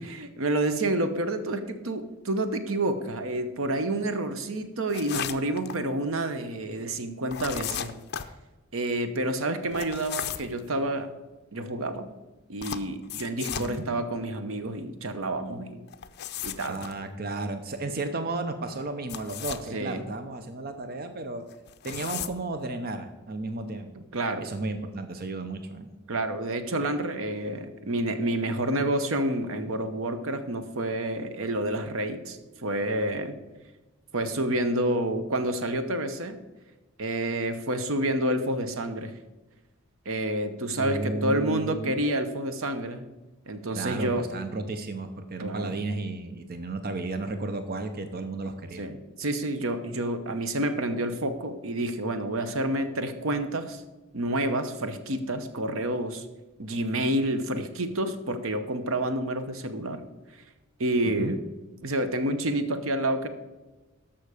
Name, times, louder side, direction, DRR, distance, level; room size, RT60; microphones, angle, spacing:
voice 1, 0.0-8.0 8.7-11.1 11.5-12.1 12.5-15.8 16.4-16.8 19.7-20.1 23.9-24.5 26.1-33.4 34.1-36.4 37.0-39.1 40.1-43.1 43.5-44.3 45.4-45.8 48.8-53.8 54.1-56.3 56.6-60.0 60.8-61.4 61.8-63.3, right 1 dB, 75° right, 10 dB, 0.9 m, -29 dB
sound 1, 4.9-5.8 7.3-8.3 9.7-10.6 12.6-13.8 15.9-16.9 19.0-19.7 21.5-22.3, left 9 dB, 50° left, 0.5 m, -35 dB
voice 2, 16.7-21.4 21.8-24.0 24.4-25.9 40.8-41.9 43.7-48.9 61.0-61.4, right 2 dB, 50° right, 8 dB, 0.7 m, -33 dB
13.5 x 5.8 x 5.0 m, 1.1 s
head